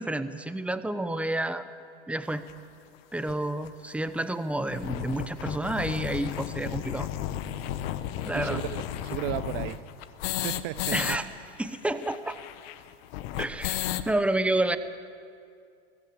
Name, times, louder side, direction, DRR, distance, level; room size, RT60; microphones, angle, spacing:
voice 1, 0.0-1.7 2.1-2.4 3.1-7.1 8.3-8.6 10.9-11.3 11.6-12.4 13.4-14.8, right 1 dB, 5° right, 0.8 m, -29 dB
sound 1, 2.5-2.6 3.3-3.4 3.6-3.7 4.0-4.1 4.5-11.2 11.4-11.5 11.7-14.1, left 12 dB, 60° left, 1.2 m, -33 dB
voice 2, 8.3-9.8 10.3-11.0, right 18 dB, 50° right, 0.7 m, -34 dB
21.0 x 16.0 x 8.1 m
hypercardioid pair, 120°, 34 cm